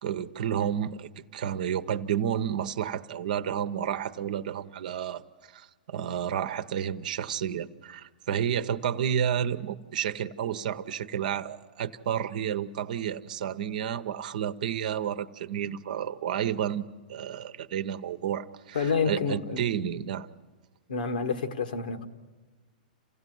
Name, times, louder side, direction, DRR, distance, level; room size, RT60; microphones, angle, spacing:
voice 1, 0.0-5.2 5.5-16.8 17.1-18.8 19.0-20.3, right 9 dB, 65° right, 0.9 m, -31 dB
voice 2, 18.7-19.7 20.9-22.1, left 5 dB, 80° left, 1.7 m, -28 dB
28.5 x 16.0 x 9.4 m
hypercardioid pair, 120°, 5 cm